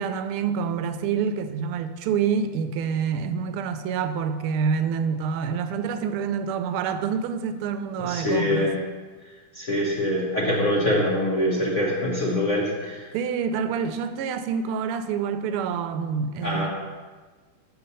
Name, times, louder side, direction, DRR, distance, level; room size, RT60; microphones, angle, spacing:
voice 1, 0.0-8.7 10.9-11.0 13.1-16.7, right 6 dB, 90° right, 1.5 m, -27 dB
voice 2, 8.0-8.8 9.5-13.0 16.4-16.7, left 1 dB, 40° left, 1.2 m, -24 dB
6.8 x 6.8 x 5.5 m
omnidirectional pair, 2.3 m